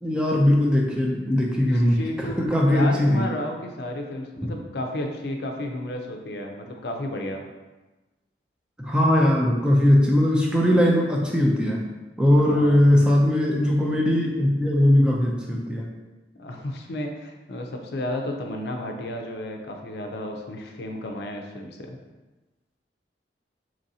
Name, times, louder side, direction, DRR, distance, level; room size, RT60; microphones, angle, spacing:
voice 1, 0.0-3.3 4.4-4.5 8.8-11.8 12.2-15.9, left 1 dB, 5° right, -2 dB, 0.4 m, -20 dB
voice 2, 1.7-2.4 2.7-7.4 12.4-12.8 16.4-22.0, left 1 dB, 65° left, 2 dB, 0.5 m, -32 dB
3.9 x 3.1 x 2.7 m, 1.2 s
head